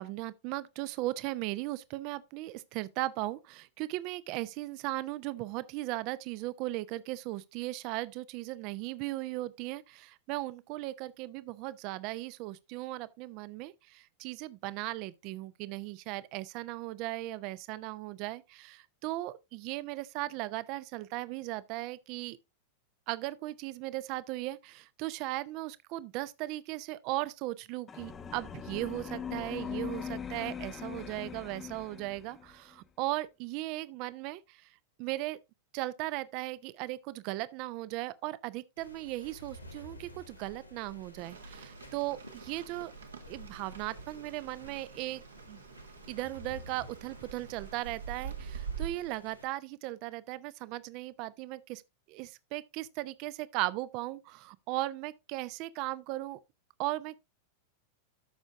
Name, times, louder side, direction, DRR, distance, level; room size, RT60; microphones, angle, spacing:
voice 1, 0.0-22.4 23.1-34.7 35.0-35.4 35.7-42.9 43.3-45.6 46.1-51.8 52.1-56.4 56.8-57.2, right 18 dB, 45° right, 0.6 m, -37 dB
sound 1, 27.9-32.5, left 7 dB, 20° left, 0.9 m, -41 dB
sound 2, 38.8-49.5, left 1 dB, 85° left, 1.5 m, -52 dB
Rain, 41.2-48.9, right 7 dB, 70° right, 1.3 m, -45 dB
13.0 x 6.3 x 2.5 m
figure-of-eight pair, 90°, 0 cm